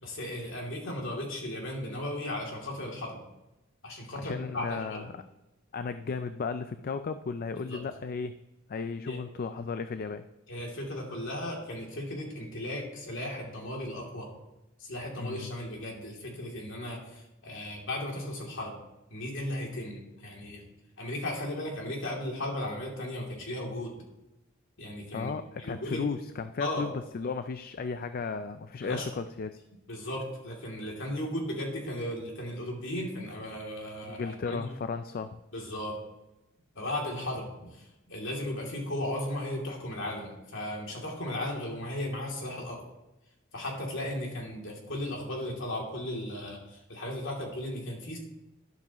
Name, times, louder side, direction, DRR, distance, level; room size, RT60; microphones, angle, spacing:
voice 1, 0.0-3.2 3.8-5.1 7.7-7.8 9.0-9.2 10.5-14.3 14.8-18.7 19.1-20.7 21.0-23.9 24.8-25.3 25.6-26.0 26.6-26.9 28.8-29.1 29.9-34.6 35.5-35.9 36.7-42.8 43.5-48.2, left 1 dB, 65° left, -1 dB, 2.9 m, -36 dB
voice 2, 4.2-5.1 5.7-8.3 8.7-10.2 15.2-15.5 25.1-29.6 34.0-35.4, left 4 dB, 45° left, 10 dB, 0.4 m, -35 dB
12.0 x 11.0 x 3.0 m, 0.95 s
head